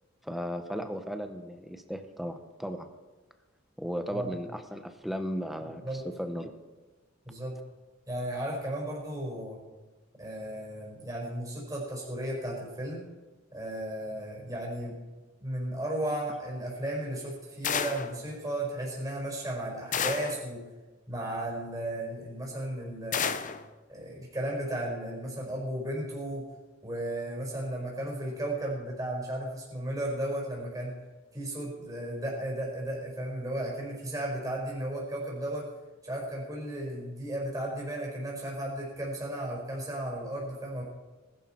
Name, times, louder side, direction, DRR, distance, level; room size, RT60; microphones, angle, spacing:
voice 1, 0.2-2.9 3.8-6.5, equal, ahead, 7 dB, 1.1 m, -36 dB
voice 2, 7.3-7.6 8.1-9.6 10.2-13.0 13.5-14.9 15.4-20.6 21.1-23.4 23.9-26.4 26.8-30.9 31.3-35.7 36.0-40.8, right 1 dB, 20° right, -3 dB, 4.9 m, -34 dB
sound 1, 17.6-18.2 19.9-20.4 23.1-23.6, left 7 dB, 40° left, 0.7 m, -30 dB
19.5 x 11.5 x 4.6 m, 1.2 s
head